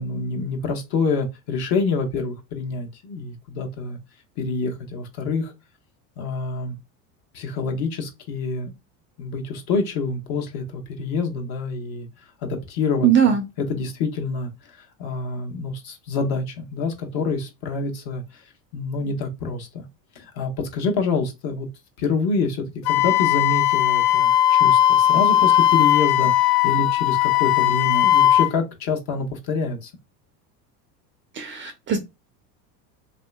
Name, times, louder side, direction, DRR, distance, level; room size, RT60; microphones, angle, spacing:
voice 1, 0.0-4.0 4.4-5.5 6.2-6.8 7.3-8.7 9.2-12.1 12.4-14.5 15.0-18.2 18.7-19.8 20.2-21.7 22.0-29.9, left 4 dB, 50° left, 1.0 m, -27 dB
voice 2, 13.0-13.4 31.4-32.0, right 8 dB, 25° right, 0.4 m, -19 dB
Wind instrument woodwind instrument, 22.9-28.5, left 12 dB, 65° left, 0.5 m, -18 dB
3.2 x 2.7 x 2.2 m
hypercardioid pair, 100°, 49 cm